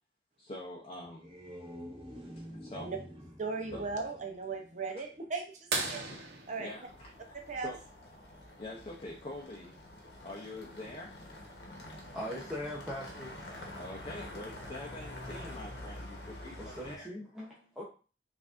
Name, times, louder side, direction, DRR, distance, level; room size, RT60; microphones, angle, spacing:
voice 1, 0.4-1.3 2.4-2.9 3.7-3.8 6.1-6.2 6.6-7.3 7.6-7.8 8.6-9.7 10.2-11.1 13.7-17.1, left 1 dB, 35° left, -2 dB, 0.6 m, -45 dB
sound 1, 1.0-5.2, equal, 30° right, 1.3 m, -48 dB
voice 2, 3.4-6.0 6.5-6.7 7.5-7.7, right 4 dB, 45° right, 3 dB, 0.6 m, -37 dB
sound 2, 5.7-8.2 10.1-10.2 12.4-12.5 14.2-14.5 15.3-15.4, right 3 dB, 65° right, 0.9 m, -37 dB
sound 3, 6.9-17.0, left 1 dB, 70° left, 1.0 m, -47 dB
voice 3, 12.1-13.3 16.6-17.8, left 1 dB, 5° right, -7 dB, 0.7 m, -40 dB
5.7 x 2.5 x 2.5 m, 0.36 s
head